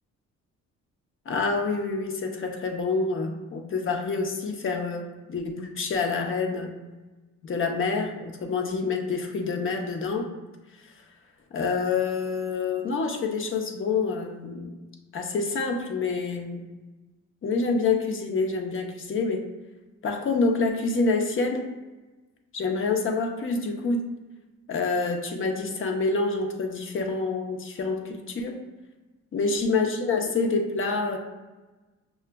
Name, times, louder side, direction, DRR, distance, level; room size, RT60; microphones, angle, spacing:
voice 1, 1.3-6.7 7.4-10.3 11.5-14.7 15.1-16.6 17.4-19.5 20.0-21.7 22.5-24.0 24.7-28.6 29.3-31.2, left 4 dB, 45° left, 3 dB, 0.7 m, -27 dB
5.7 x 2.3 x 2.2 m, 1.2 s
cardioid pair, 90°, 30 cm